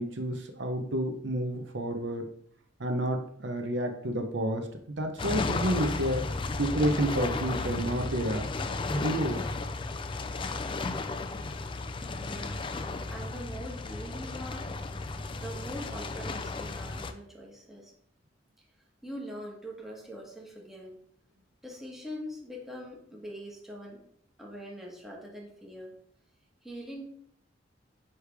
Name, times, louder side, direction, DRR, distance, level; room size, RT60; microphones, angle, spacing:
voice 1, 0.0-2.3 2.8-4.7 5.0-6.2 6.6-9.5, right 1 dB, 65° right, 5 dB, 0.8 m, -30 dB
sound 1, 5.2-17.1, left 3 dB, 25° left, 0.4 m, -34 dB
voice 2, 12.1-14.7 15.4-17.9 19.0-21.0 21.6-24.0 24.4-25.9 26.6-27.0, equal, ahead, -3 dB, 1.3 m, -43 dB
9.5 x 3.4 x 3.4 m, 0.64 s
head